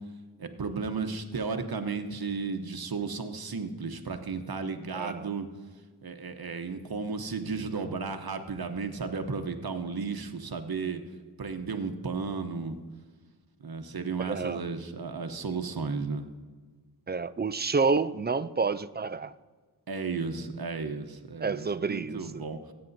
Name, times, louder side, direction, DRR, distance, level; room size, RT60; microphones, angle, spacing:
voice 1, 0.4-5.5 6.0-11.0 11.4-12.8 13.6-16.2 19.9-22.6, right 4 dB, 65° right, 7 dB, 0.9 m, -34 dB
voice 2, 4.9-5.3 14.2-14.6 17.1-19.3 21.4-22.4, right 4 dB, 25° right, 14 dB, 0.4 m, -29 dB
19.5 x 8.7 x 2.7 m, 1.4 s
wide cardioid pair, 75°, 39 cm